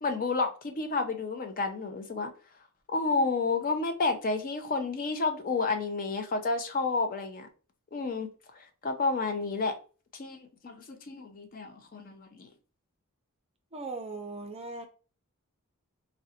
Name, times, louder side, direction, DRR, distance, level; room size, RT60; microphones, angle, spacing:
voice 1, 0.0-2.3 2.9-7.5 7.9-8.3 8.8-9.7 10.1-10.4 10.6-12.5, left 3 dB, 40° left, 0.4 m, -30 dB
voice 2, 13.7-14.9, right 3 dB, 25° right, 0.5 m, -38 dB
3.7 x 2.1 x 2.7 m
head